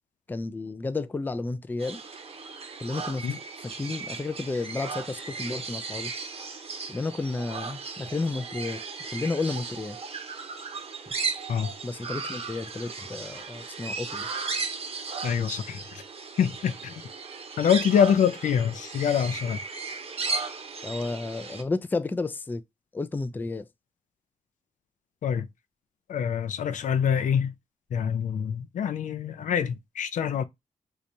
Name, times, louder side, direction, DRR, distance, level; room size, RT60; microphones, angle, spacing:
voice 1, 0.3-2.0 2.8-3.3 3.6-6.1 6.9-8.8 9.1-10.0 11.8-14.3 20.8-22.6 22.9-23.7, left 3 dB, 15° left, 0.3 m, -32 dB
sound 1, 1.8-21.6, right 4 dB, 50° right, 0.8 m, -36 dB
voice 2, 15.2-16.0 16.4-16.9 17.6-19.6 25.2-25.5 26.1-27.5 27.9-30.4, left 8 dB, 75° left, 0.5 m, -25 dB
3.3 x 2.8 x 2.5 m
cardioid pair, 85°, 13 cm